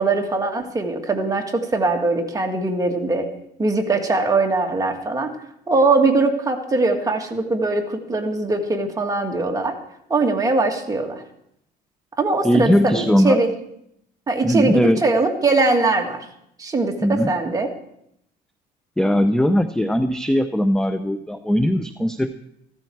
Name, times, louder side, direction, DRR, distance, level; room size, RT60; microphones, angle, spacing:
voice 1, 0.0-3.3 3.6-5.3 5.7-9.8 10.1-11.2 12.2-13.5 14.3-16.2 16.6-17.7, right 3 dB, 20° right, 2 dB, 2.2 m, -21 dB
voice 2, 12.4-13.4 14.4-15.0 17.0-17.3 19.0-22.3, equal, 5° left, 10 dB, 0.6 m, -19 dB
14.5 x 13.5 x 4.7 m, 0.76 s
cardioid pair, 110°, 17 cm